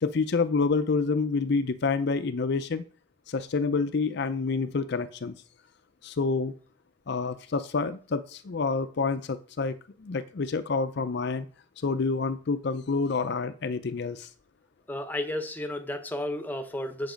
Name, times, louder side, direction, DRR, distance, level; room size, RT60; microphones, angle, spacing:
voice 1, 0.0-2.8 3.3-5.3 6.0-6.5 7.1-11.5 11.8-14.3, left 4 dB, 50° left, 11 dB, 0.5 m, -28 dB
voice 2, 14.9-17.1, left 1 dB, 10° left, 7 dB, 0.9 m, -32 dB
8.2 x 7.1 x 5.1 m, 0.41 s
head